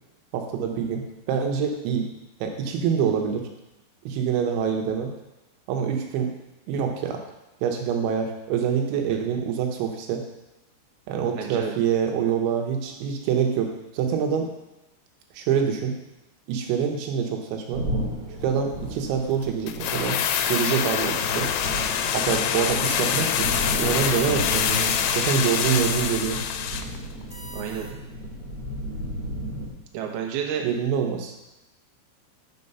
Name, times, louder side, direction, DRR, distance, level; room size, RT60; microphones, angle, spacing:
voice 1, 0.3-2.1 2.4-3.5 4.1-5.1 5.7-6.3 6.7-7.2 7.6-10.2 11.1-14.5 15.3-15.9 16.5-17.9 18.4-20.2 20.5-21.5 22.1-23.5 23.8-26.4 30.6-31.3, right 7 dB, 85° right, 2 dB, 3.3 m, -25 dB
voice 2, 11.4-11.7 27.5-28.0 29.9-30.6, right 8 dB, 70° right, 1 dB, 2.8 m, -30 dB
sound 1, 17.7-29.7, equal, 35° right, 2.6 m, -34 dB
sound 2, 19.7-27.0 27.2-27.3, left 9 dB, 85° left, 3.0 m, -25 dB
sound 3, 20.4-22.1 23.9-25.6 27.3-27.9, right 1 dB, 50° left, 0.4 m, -44 dB
9.2 x 5.5 x 5.5 m, 0.98 s
omnidirectional pair, 5.2 m